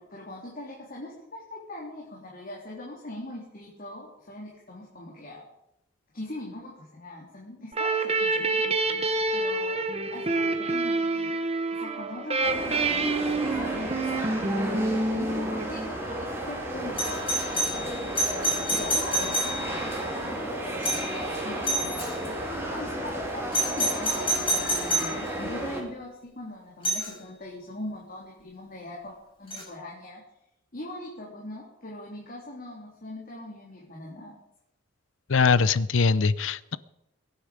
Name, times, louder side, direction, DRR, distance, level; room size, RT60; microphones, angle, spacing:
voice 1, 0.0-5.4 6.1-8.6 9.3-9.8 10.1-17.2 17.5-18.0 18.7-29.1 29.4-30.2 30.7-34.4, left 1 dB, 45° left, -4 dB, 3.4 m, -41 dB
sound 1, 7.7-16.2, right 3 dB, 30° right, 1.2 m, -27 dB
sound 2, 12.4-25.8, right 1 dB, 15° right, 3.6 m, -33 dB
Doorbell, 17.0-19.9 20.8-21.2 21.6-22.2 23.5-25.2 26.8-27.1 29.5-29.6, right 1 dB, 30° left, 6.4 m, -28 dB
voice 2, 35.3-36.8, left 5 dB, 80° left, 18 dB, 0.6 m, -22 dB
22.5 x 10.0 x 5.1 m, 0.85 s
head